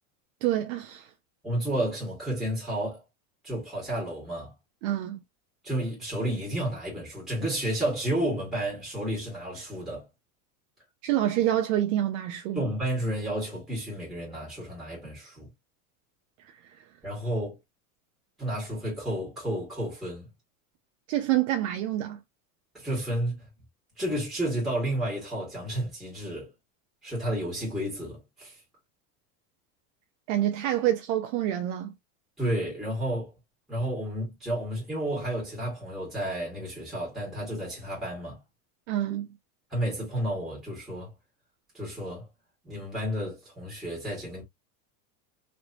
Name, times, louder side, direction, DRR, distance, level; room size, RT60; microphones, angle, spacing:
voice 1, 0.4-1.1 4.8-5.2 11.0-12.6 21.1-22.2 30.3-31.9 38.9-39.3, right 12 dB, 60° right, 0.6 m, -27 dB
voice 2, 1.4-3.0 3.4-4.5 5.6-10.1 12.5-15.5 17.0-17.6 18.4-20.3 22.7-23.5 24.0-26.5 27.0-28.6 32.4-33.3 33.7-38.4 39.7-41.1 41.7-42.3 42.6-44.4, right 1 dB, ahead, 1.7 m, -31 dB
3.3 x 3.0 x 2.6 m
supercardioid pair, 165°, 44 cm